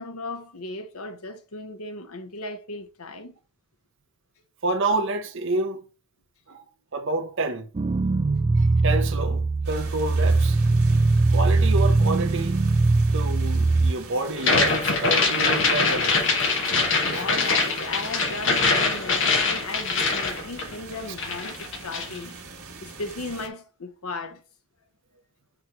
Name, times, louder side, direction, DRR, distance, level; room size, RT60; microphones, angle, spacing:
voice 1, 0.0-3.4 17.1-22.4 22.8-24.4, left 2 dB, 80° left, 0.9 m, -36 dB
voice 2, 4.6-5.8 6.5-6.6 6.9-7.7 8.6-11.0 11.3-12.6 13.1-16.2 17.1-17.3, right 2 dB, 60° right, 0.7 m, -28 dB
sound 1, 7.7-13.9, right 3 dB, 25° right, 0.3 m, -21 dB
sound 2, 9.6-23.5, right 3 dB, 85° right, 1.6 m, -43 dB
sound 3, 14.4-20.9 21.2-22.2, left 4 dB, 60° left, 1.1 m, -23 dB
6.3 x 3.1 x 5.2 m
head